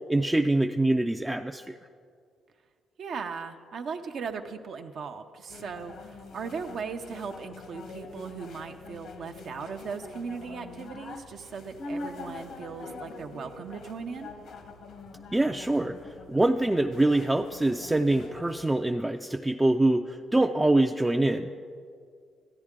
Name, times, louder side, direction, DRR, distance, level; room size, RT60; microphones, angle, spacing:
voice 1, 0.1-1.7 15.3-16.0 16.3-21.6, right 2 dB, 10° right, 5 dB, 0.3 m, -24 dB
voice 2, 3.0-14.3, right 5 dB, 65° right, 5 dB, 0.5 m, -38 dB
sound 1, 5.5-18.7, left 3 dB, 70° left, 0.9 m, -44 dB
14.0 x 9.7 x 3.6 m, 2.2 s
cardioid pair, 90°, 0 cm